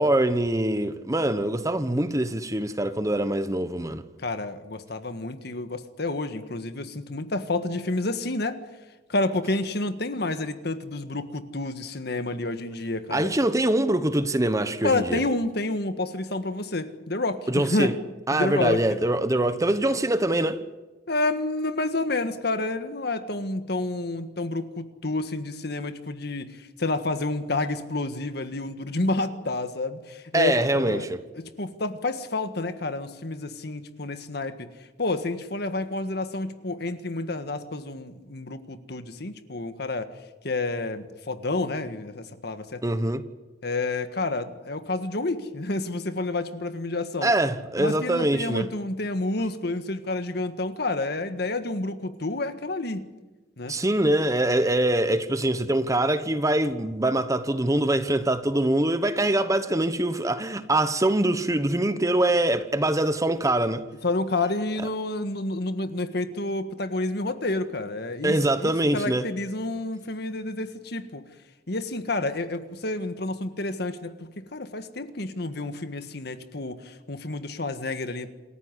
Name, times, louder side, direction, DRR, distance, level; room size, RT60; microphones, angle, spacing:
voice 1, 0.0-4.0 13.1-15.2 17.5-17.9 18.3-20.6 30.3-31.2 42.8-43.2 47.2-48.7 53.7-63.8 68.2-69.3, right 1 dB, 20° right, 1.1 m, -24 dB
voice 2, 4.2-8.6 9.1-13.3 14.8-17.9 18.3-19.0 21.1-31.1 31.3-34.7 35.0-40.1 40.4-43.0 43.6-47.3 47.8-53.1 53.6-53.7 64.0-71.2 71.7-78.3, left 2 dB, 65° left, 1.6 m, -29 dB
28.0 x 14.5 x 9.8 m
head